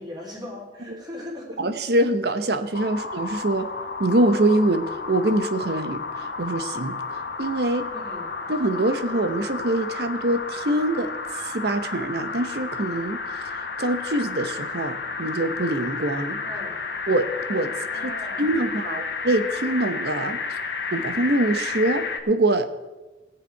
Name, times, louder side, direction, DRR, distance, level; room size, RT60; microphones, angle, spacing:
voice 1, 0.0-1.6 7.9-8.3 16.4-16.8 17.7-19.0, left 1 dB, 25° right, -2 dB, 3.5 m, -39 dB
voice 2, 1.6-3.7 4.0-7.0 7.4-7.9 8.5-11.1 11.4-13.2 13.8-16.4 17.1-17.7 18.0-18.1 18.4-20.4 20.9-22.8, right 1 dB, 65° right, 9 dB, 0.9 m, -24 dB
sound 1, 2.7-22.2, left 4 dB, 70° left, 1.3 m, -32 dB
20.0 x 7.6 x 4.7 m, 1.2 s
head